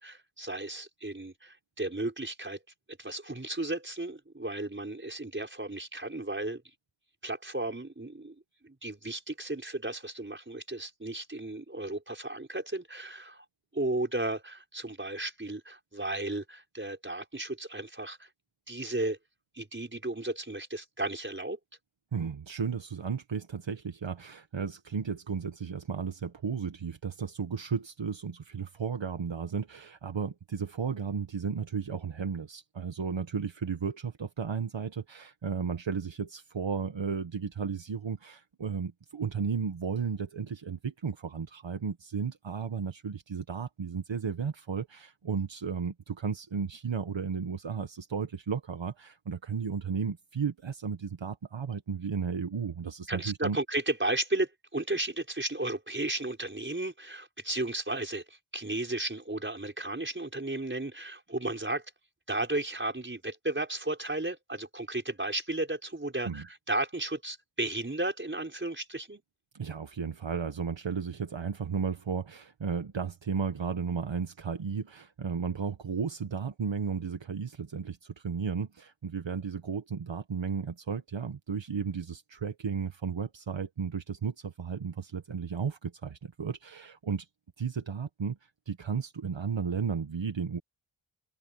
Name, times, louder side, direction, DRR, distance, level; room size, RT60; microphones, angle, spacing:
voice 1, 0.0-2.6 3.0-6.6 7.2-8.4 8.6-13.4 13.7-18.3 18.7-19.2 19.6-21.6 53.1-61.9 62.3-69.2, right 2 dB, 25° right, 5.6 m, -34 dB
voice 2, 22.1-53.6 66.2-66.5 69.5-87.3 87.6-90.6, right 6 dB, 65° right, 1.5 m, -34 dB
wide cardioid pair, 65°, 49 cm